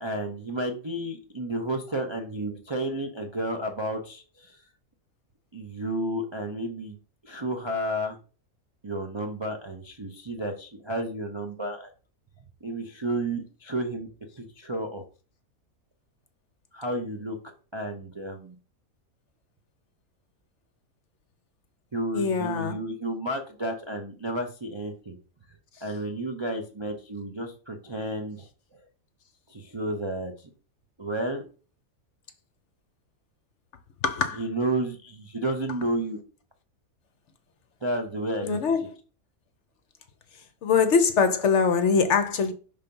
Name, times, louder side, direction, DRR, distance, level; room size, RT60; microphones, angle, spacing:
voice 1, 0.0-4.6 5.5-7.0 7.2-8.2 8.8-11.9 12.6-14.1 14.4-15.0 16.7-17.4 17.7-18.6 21.9-25.2 25.8-28.5 29.5-30.5 31.0-31.4 34.3-36.2 37.8-38.6, right 1 dB, 35° right, 0.4 m, -31 dB
voice 2, 22.1-22.8 34.0-34.4 38.4-38.8 40.6-42.5, left 5 dB, 60° left, 0.9 m, -22 dB
5.7 x 3.4 x 5.3 m
omnidirectional pair, 1.5 m